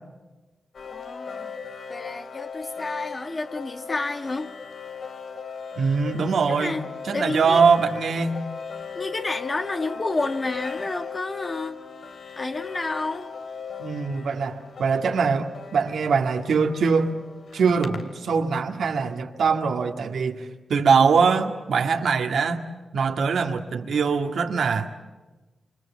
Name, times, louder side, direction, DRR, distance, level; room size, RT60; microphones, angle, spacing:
sound 1, 0.7-18.7, left 6 dB, 70° left, 2.4 m, -38 dB
voice 1, 0.9-1.5 1.9-4.5 6.5-6.8 7.1-7.6 8.9-11.8 12.4-13.3, left 2 dB, 35° left, 6 dB, 1.9 m, -30 dB
voice 2, 5.8-6.7 7.1-8.4 13.8-17.2 17.5-22.6 22.9-24.9, right 5 dB, 85° right, 5 dB, 2.0 m, -22 dB
28.0 x 26.0 x 7.3 m, 1.2 s
cardioid pair, 70°, 0 cm